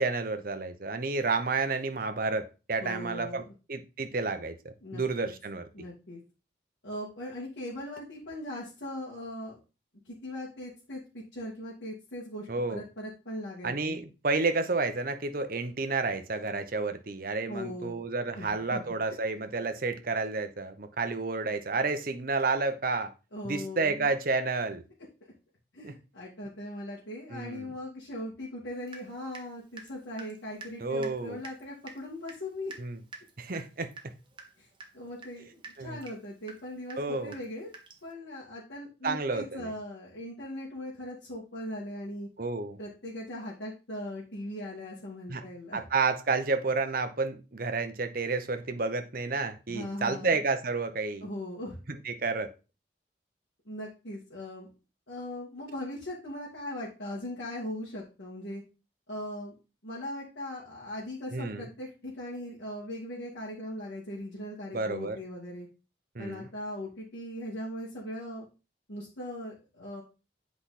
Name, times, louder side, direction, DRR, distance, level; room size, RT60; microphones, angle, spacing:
voice 1, 0.0-3.4 3.7-5.6 12.5-12.8 13.6-23.1 23.4-24.8 25.8-25.9 27.3-27.7 30.8-31.4 32.8-33.0 33.4-34.1 35.8-36.0 37.0-37.4 39.0-39.7 42.4-42.8 45.3-45.4 45.7-51.3 52.0-52.5 61.3-61.7 64.7-65.2 66.1-66.5, right 3 dB, 50° right, 8 dB, 0.8 m, -30 dB
voice 2, 2.8-3.5 4.8-5.3 5.7-6.2 6.8-9.6 10.0-14.0 17.5-18.0 18.3-18.8 23.3-24.1 25.7-32.7 34.6-34.7 34.9-37.7 38.0-42.3 42.8-45.8 49.7-50.4 51.2-51.8 53.6-54.7 55.1-58.6 59.1-59.5 59.8-65.7 66.2-68.4 68.9-70.0, left 1 dB, 80° left, -7 dB, 2.3 m, -39 dB
Water tap faucet / Drip, 28.9-29.5 29.8-38.1, right 3 dB, 30° right, 1.1 m, -49 dB
8.1 x 4.8 x 4.2 m, 0.31 s
head